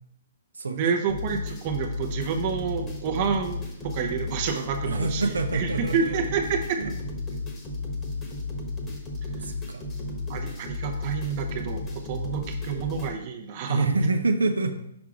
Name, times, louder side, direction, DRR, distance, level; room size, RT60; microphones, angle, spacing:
voice 1, 0.6-6.8 9.4-9.5 10.3-14.0, right 6 dB, 45° right, 4 dB, 0.7 m, -29 dB
sound 1, 1.1-13.1, left 3 dB, 20° left, 1.3 m, -33 dB
voice 2, 4.9-6.2 6.8-6.9 9.4-9.8 13.7-14.7, right 3 dB, 85° right, 6 dB, 0.6 m, -26 dB
6.1 x 4.6 x 3.8 m, 0.75 s
hypercardioid pair, 130°, 0 cm